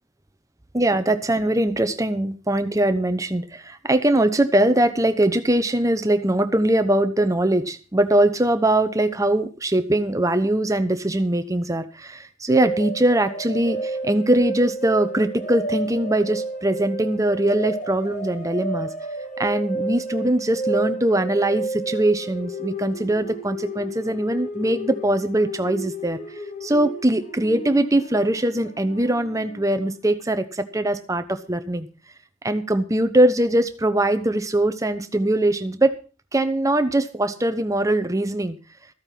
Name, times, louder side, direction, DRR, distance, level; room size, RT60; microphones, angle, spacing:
voice 1, 0.7-18.9 19.4-26.2 26.6-31.9 32.4-36.0 36.3-38.6, right 1 dB, 15° right, 10 dB, 0.9 m, -21 dB
sound 1, 12.5-29.9, right 2 dB, 40° left, 1.6 m, -32 dB
14.5 x 8.8 x 5.8 m, 0.37 s
head